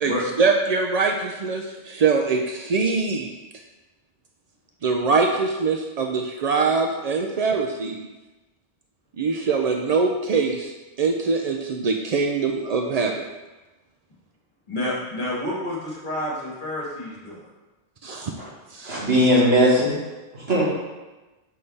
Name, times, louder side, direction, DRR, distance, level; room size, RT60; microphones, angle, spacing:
voice 1, 0.4-3.3 4.8-8.1 9.2-10.7 11.0-13.1 18.0-18.3 18.7-19.0, right 4 dB, 75° right, 2 dB, 0.3 m, -23 dB
voice 2, 14.7-17.4, left 1 dB, 40° left, -7 dB, 2.2 m, -29 dB
voice 3, 18.8-20.0 20.3-20.6, equal, 60° right, -5 dB, 1.9 m, -18 dB
6.5 x 5.5 x 3.3 m, 1.1 s
omnidirectional pair, 1.2 m